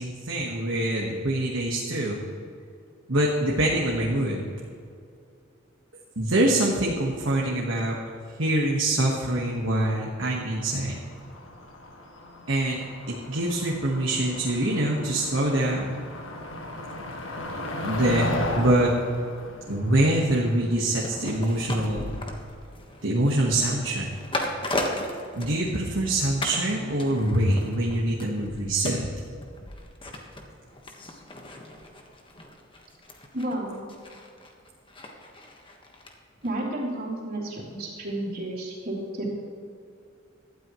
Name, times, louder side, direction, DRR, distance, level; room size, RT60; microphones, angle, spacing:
voice 1, 0.0-2.2 3.1-4.4 6.2-8.0 8.4-11.0 12.5-12.8 13.1-16.0 17.8-18.2 18.6-18.9 19.7-22.2 23.0-24.2 25.3-29.1, right 1 dB, 70° right, -3 dB, 1.5 m, -24 dB
Motor vehicle (road), 10.4-20.8, left 1 dB, 70° left, 1.7 m, -35 dB
sound 1, 20.9-26.1 26.4-26.7 27.0-36.1 36.4-36.5, left 1 dB, 25° left, 1.4 m, -36 dB
voice 2, 33.3-33.8 36.4-39.4, right 1 dB, 50° right, -10 dB, 3.2 m, -31 dB
18.0 x 12.5 x 3.1 m, 2.5 s
head